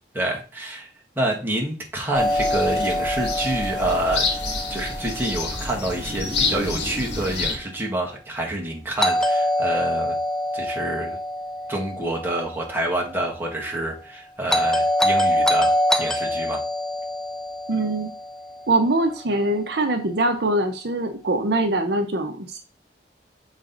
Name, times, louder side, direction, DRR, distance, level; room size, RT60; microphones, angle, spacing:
voice 1, 0.1-0.9 1.1-4.3 4.7-10.2 10.5-11.2 11.7-16.6, right 1 dB, 10° right, -1 dB, 1.4 m, -27 dB
sound 1, 2.1-7.6, left 3 dB, 80° left, 1.8 m, -28 dB
Doorbell, 2.1-6.1 9.0-13.2 14.5-18.9, left 1 dB, 5° left, 0.5 m, -25 dB
voice 2, 17.7-18.1 18.7-22.6, right 2 dB, 65° right, 6 dB, 0.8 m, -23 dB
6.4 x 4.1 x 3.8 m, 0.34 s
head